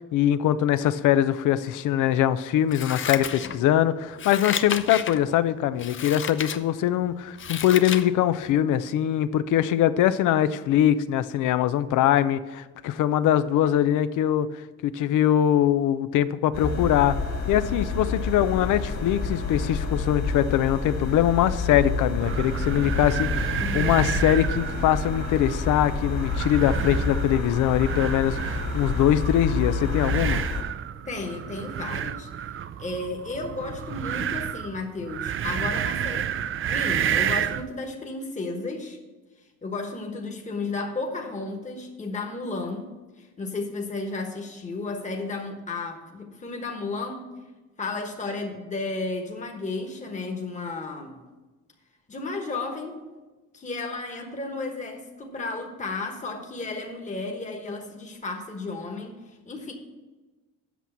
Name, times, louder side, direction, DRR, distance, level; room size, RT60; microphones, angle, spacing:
voice 1, 0.0-14.5 14.8-17.1 17.5-30.4, left 11 dB, 85° left, 13 dB, 0.5 m, -22 dB
Scissors, 2.7-3.8 4.2-5.2 5.8-6.6 7.0-8.1 8.5-8.6, left 8 dB, 40° left, 0.6 m, -31 dB
sound 1, 16.5-30.6, left 4 dB, 60° left, 2.2 m, -29 dB
sound 2, 22.2-37.7, right 9 dB, 45° right, 0.5 m, -31 dB
voice 2, 23.6-24.0 31.1-32.3 32.8-36.3 36.7-39.0 39.6-47.3 47.8-51.2 52.1-53.0 53.5-59.7, left 3 dB, 25° left, 3 dB, 1.2 m, -33 dB
8.1 x 6.1 x 7.0 m, 1.2 s
cardioid pair, 90°, 30 cm